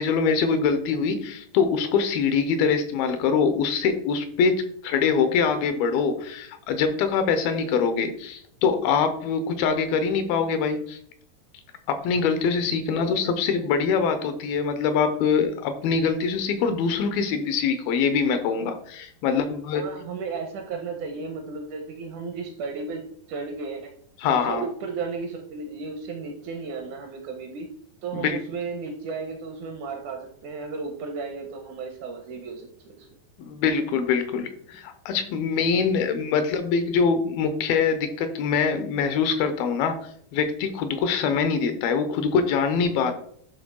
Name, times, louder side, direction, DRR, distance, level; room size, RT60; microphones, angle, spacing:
voice 1, 0.0-11.0 11.9-19.8 24.2-24.7 28.1-28.4 33.4-40.0 40.3-43.1, left 5 dB, 85° left, 9 dB, 2.7 m, -24 dB
voice 2, 12.9-13.6 19.3-19.4 19.7-24.0 24.2-27.7 28.0-33.1, right 4 dB, 75° right, 4 dB, 1.9 m, -34 dB
11.0 x 3.8 x 4.4 m, 0.64 s
omnidirectional pair, 4.3 m